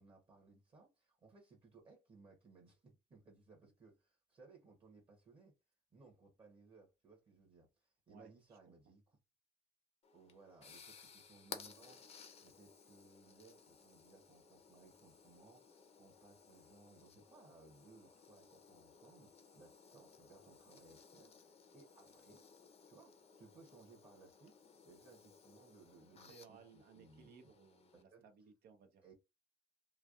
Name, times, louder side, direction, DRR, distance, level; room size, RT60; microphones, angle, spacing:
voice 1, 0.0-5.5 5.9-9.2 10.1-22.5 22.8-27.3 28.1-28.3 29.0-29.1, right 3 dB, 30° right, 1.1 m, -63 dB
voice 2, 8.1-8.6 26.1-29.0, right 5 dB, 65° right, 0.7 m, -61 dB
sound 1, 10.0-28.0, left 6 dB, 40° left, 0.6 m, -59 dB
3.2 x 2.2 x 2.5 m
cardioid pair, 110°, 17 cm